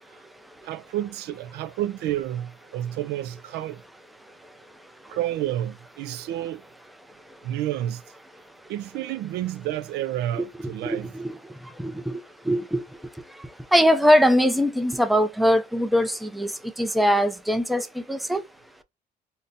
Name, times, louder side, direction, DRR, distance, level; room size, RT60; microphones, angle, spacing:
voice 1, 0.6-3.8 5.1-6.6 7.4-8.0 8.7-11.1, right 13 dB, 80° right, 0.4 m, -30 dB
voice 2, 10.8-11.3 11.8-12.2 12.5-12.8 13.7-16.5 16.8-18.4, equal, ahead, 0.4 m, -21 dB
5.4 x 2.1 x 2.5 m
cardioid pair, 110°, 17 cm